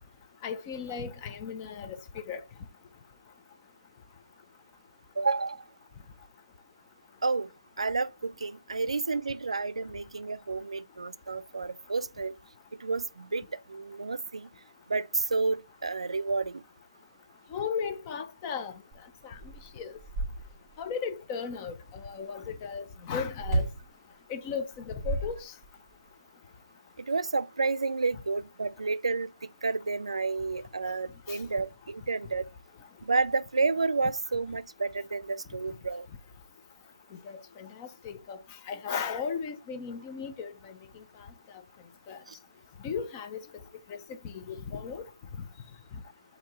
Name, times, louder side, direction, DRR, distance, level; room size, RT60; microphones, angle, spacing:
voice 1, 0.4-2.4 17.5-18.7 19.2-19.4 19.8-19.9 20.8-23.7 24.3-25.5 31.3-31.4 37.1-38.4 38.7-41.0 42.1-42.2 42.8-43.4 43.9-44.0 44.2-45.0, left 6 dB, 15° left, 0.4 m, -36 dB
voice 2, 5.2-5.6 7.2-7.5 7.8-12.3 12.8-14.5 14.9-16.6 27.0-32.5 33.0-36.1 42.3-42.4, right 4 dB, 80° right, 0.4 m, -30 dB
sound 1, 18.9-19.0 19.3-20.8 23.4-23.9 24.7-25.9, right 2 dB, 10° right, 2.7 m, -32 dB
7.0 x 2.7 x 2.8 m
figure-of-eight pair, 165°, 3 cm